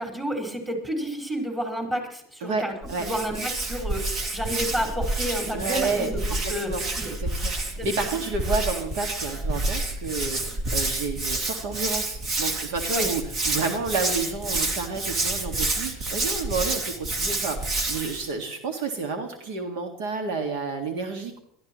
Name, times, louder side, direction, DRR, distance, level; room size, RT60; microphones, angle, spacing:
voice 1, 0.0-2.7 3.0-6.2 6.5-7.1 7.8-7.9 12.9-13.1, equal, 15° right, 1 dB, 5.1 m, -30 dB
voice 2, 2.4-3.1 5.5-6.1 6.4-6.8 7.2-21.4, right 4 dB, 75° right, 6 dB, 1.9 m, -30 dB
Hands, 2.8-18.3, right 2 dB, 45° right, 2.5 m, -29 dB
22.5 x 13.5 x 3.1 m, 0.69 s
supercardioid pair, 105°, 0 cm